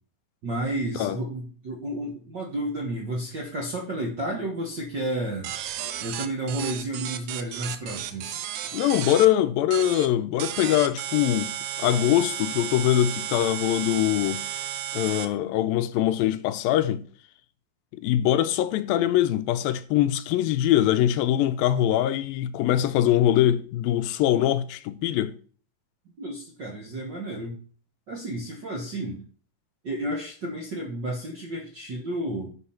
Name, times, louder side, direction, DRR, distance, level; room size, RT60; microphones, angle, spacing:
voice 1, 0.4-5.5 6.0-8.4 26.2-27.6 28.1-29.2 29.8-32.5, right 1 dB, 55° right, 1.2 m, -31 dB
sound 1, 5.4-9.3 9.7-10.1 10.4-15.3, right 11 dB, 75° right, 1.8 m, -33 dB
voice 2, 8.7-11.5 11.8-14.4 14.9-17.0 17.9-25.3, left 12 dB, 85° left, 2.4 m, -23 dB
10.0 x 4.7 x 5.8 m
omnidirectional pair, 4.1 m